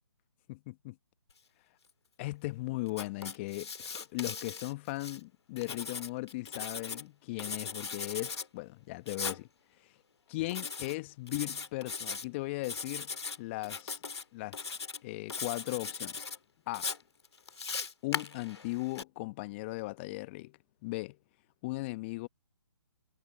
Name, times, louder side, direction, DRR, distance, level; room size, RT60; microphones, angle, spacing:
voice 1, 0.5-0.9 2.2-9.5 9.8-9.9 10.3-13.1 13.4-14.0 14.3-14.7 15.0-16.3 16.7-16.9 18.0-21.2 21.6-22.3, left 22 dB, 25° left, 1.2 m, -38 dB
Writing, 2.9-5.2 5.6-7.0 7.4-8.5 9.1-9.4 10.5-11.0 11.3-12.2 12.6-13.4 13.6-14.2 14.5-15.0 15.3-16.4 16.7-19.0, left 5 dB, 70° left, 1.8 m, -39 dB
figure-of-eight pair, 140°, 14 cm